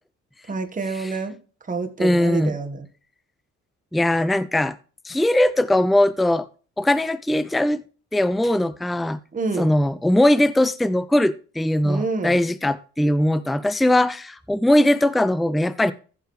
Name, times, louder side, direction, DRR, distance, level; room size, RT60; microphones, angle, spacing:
voice 1, 0.5-1.3 1.7-2.9 9.3-9.7 11.8-12.4, right 4 dB, 25° right, 1.5 m, -27 dB
voice 2, 2.0-2.5 3.9-4.8 5.0-6.5 6.8-7.8 8.1-9.2 9.6-15.9, left 1 dB, ahead, 0.5 m, -20 dB
15.0 x 6.7 x 3.3 m
cardioid pair, 90°, 30 cm